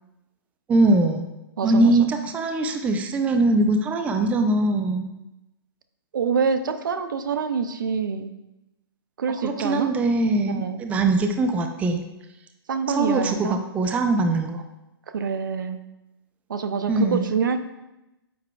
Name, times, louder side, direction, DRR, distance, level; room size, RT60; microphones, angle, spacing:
voice 1, 0.7-1.3 1.6-5.1 9.4-12.0 12.9-14.6 16.9-17.3, right 2 dB, 10° right, 5 dB, 0.5 m, -22 dB
voice 2, 1.6-2.1 6.1-8.3 9.2-9.9 10.5-10.8 12.7-13.6 15.1-15.8 16.5-17.6, right 6 dB, 55° right, 10 dB, 0.6 m, -26 dB
9.2 x 6.6 x 2.3 m, 0.95 s
figure-of-eight pair, 115°, 13 cm